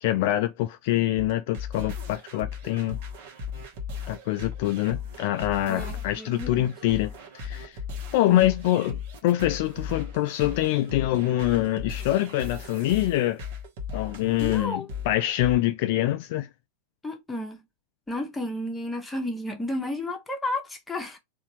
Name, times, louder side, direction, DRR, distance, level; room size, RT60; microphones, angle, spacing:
voice 1, 0.0-3.0 4.1-7.8 8.1-13.4 13.9-16.5, left 14 dB, 50° left, 0.3 m, -25 dB
sound 1, 1.2-15.6, left 5 dB, 50° right, 1.2 m, -37 dB
voice 2, 5.7-6.6 8.3-8.5 14.4-14.9 17.0-17.6 18.1-21.2, left 1 dB, 10° left, 1.1 m, -32 dB
4.0 x 2.5 x 3.0 m
figure-of-eight pair, 90°, 0 cm